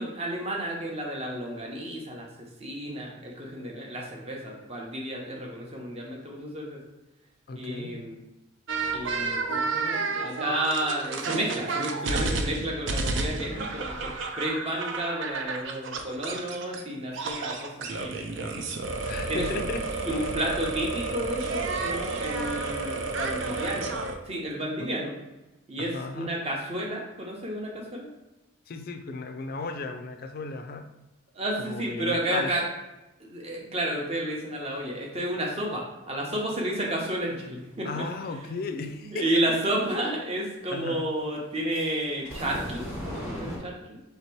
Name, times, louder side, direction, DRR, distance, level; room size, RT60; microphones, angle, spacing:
voice 1, 0.0-2.3 2.6-6.8 7.6-8.2 8.9-14.1 14.4-18.1 18.4-18.5 19.3-19.5 20.1-23.9 24.2-25.1 25.7-28.1 31.3-32.6 33.2-38.0 39.0-44.0, right 1 dB, 30° right, -1 dB, 0.7 m, -31 dB
voice 2, 7.5-8.1 19.1-20.4 24.8-24.9 25.8-26.4 28.7-30.9 31.6-32.5 37.8-39.4 40.7-41.1, left 3 dB, 45° left, 6 dB, 0.4 m, -35 dB
sound 1, 8.7-16.8 17.1-24.2, right 3 dB, 65° right, 0.5 m, -31 dB
sound 2, 41.7-43.6, equal, 10° right, 1.2 m, -36 dB
3.4 x 2.9 x 4.4 m, 0.99 s
head